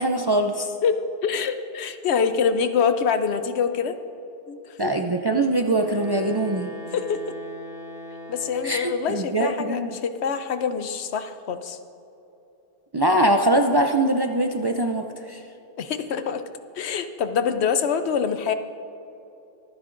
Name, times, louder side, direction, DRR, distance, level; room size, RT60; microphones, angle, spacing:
voice 1, 0.0-0.7 4.8-6.7 8.6-10.0 12.9-15.4, right 1 dB, 35° right, 4 dB, 0.4 m, -22 dB
voice 2, 0.8-4.0 4.5-4.9 6.9-7.4 8.3-11.8 15.8-16.4 16.7-18.5, left 6 dB, 85° left, 9 dB, 1.0 m, -25 dB
Wind instrument woodwind instrument, 5.8-9.3, equal, 60° left, 1.7 m, -40 dB
24.0 x 9.4 x 2.6 m, 3.0 s
omnidirectional pair, 1.1 m